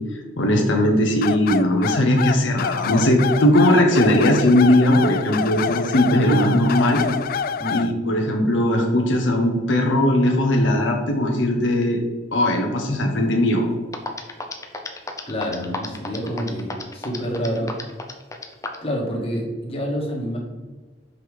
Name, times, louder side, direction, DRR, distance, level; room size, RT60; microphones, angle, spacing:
voice 1, 0.4-7.1 7.7-12.0 12.3-13.6, left 1 dB, 80° left, 1 dB, 1.0 m, -18 dB
sound 1, 1.2-7.9, left 6 dB, 50° left, 0.3 m, -27 dB
sound 2, 13.6-13.7 13.9-18.9, left 3 dB, 15° left, 0.7 m, -32 dB
voice 2, 15.2-17.8 18.8-20.4, equal, 30° left, -1 dB, 1.6 m, -27 dB
5.5 x 5.1 x 4.8 m, 1.3 s
head